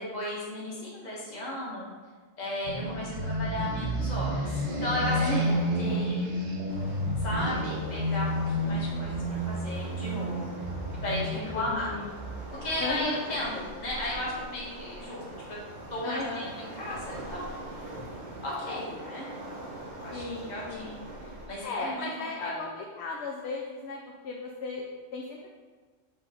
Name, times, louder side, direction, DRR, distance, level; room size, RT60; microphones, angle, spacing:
voice 1, 0.0-1.9 2.4-5.5 5.8-6.4 7.2-10.5 11.0-11.9 12.6-15.2 15.5-15.6 15.9-17.5 18.4-19.3 20.0-20.2 20.5-20.9 21.5-22.1 22.4-22.5, left 1 dB, 35° left, -6 dB, 1.5 m, -35 dB
sound 1, 2.6-13.4, equal, 40° right, 0.8 m, -30 dB
voice 2, 5.2-5.6 11.3-12.1 12.8-13.2 16.0-16.5 20.1-21.0 21.6-24.0 24.2-24.8 25.1-25.5, left 3 dB, 65° left, 0 dB, 0.8 m, -36 dB
Waves surf, 6.7-21.5, right 1 dB, 85° right, 1.6 m, -43 dB
5.3 x 3.2 x 5.5 m, 1.4 s
omnidirectional pair, 1.3 m